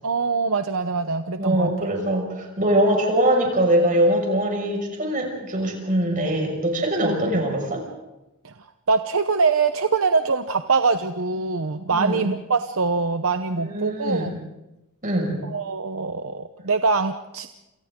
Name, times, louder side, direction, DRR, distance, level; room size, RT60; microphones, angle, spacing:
voice 1, 0.0-1.7 7.0-7.4 8.4-8.5 8.9-14.4 15.4-17.5, right 4 dB, 65° right, 8 dB, 0.9 m, -23 dB
voice 2, 1.4-7.8 11.9-12.2 13.5-14.3 15.0-15.4, right 1 dB, 35° right, 1 dB, 5.9 m, -22 dB
28.5 x 28.0 x 3.8 m, 0.96 s
head